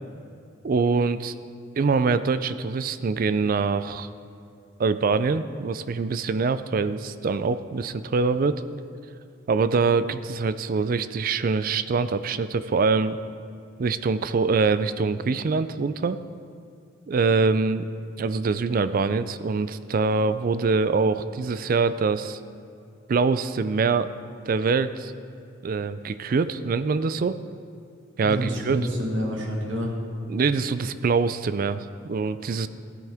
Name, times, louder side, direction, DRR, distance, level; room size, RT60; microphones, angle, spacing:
voice 1, 0.6-1.3 1.8-4.1 4.8-8.6 9.5-13.2 13.8-16.2 17.1-17.8 18.2-22.4 23.1-24.1 24.5-25.1 25.6-27.4 28.2-28.8 30.3-32.7, right 4 dB, 45° right, 13 dB, 0.4 m, -24 dB
voice 2, 28.2-29.9, equal, 65° right, -1 dB, 1.8 m, -28 dB
14.5 x 9.3 x 3.5 m, 2.6 s
head